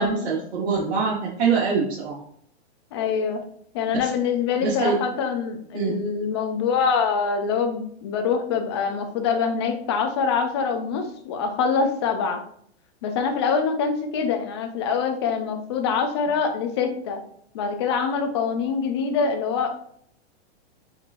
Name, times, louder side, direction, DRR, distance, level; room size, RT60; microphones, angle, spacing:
voice 1, 0.0-2.2 4.0-4.1 4.6-5.0 5.7-5.9, right 5 dB, 75° right, -4 dB, 1.1 m, -24 dB
voice 2, 2.9-3.4 3.7-12.4 13.0-17.2 17.5-19.7, left 5 dB, 25° left, 6 dB, 0.3 m, -24 dB
6.3 x 3.0 x 2.5 m, 0.64 s
hypercardioid pair, 160°, 34 cm